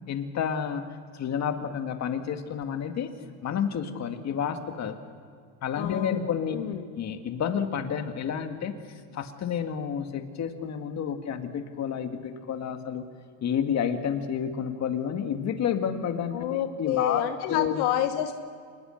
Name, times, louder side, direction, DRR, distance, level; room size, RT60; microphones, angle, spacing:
voice 1, 0.1-0.8 1.1-3.1 3.4-5.0 5.6-6.6 7.0-8.8 9.1-13.0 13.4-17.2 17.5-17.8, left 8 dB, 40° left, 6 dB, 2.1 m, -30 dB
voice 2, 5.8-6.2 6.5-6.9 16.3-18.3, left 11 dB, 70° left, 7 dB, 1.3 m, -28 dB
26.5 x 21.0 x 6.6 m, 2.2 s
supercardioid pair, 120°, 41 cm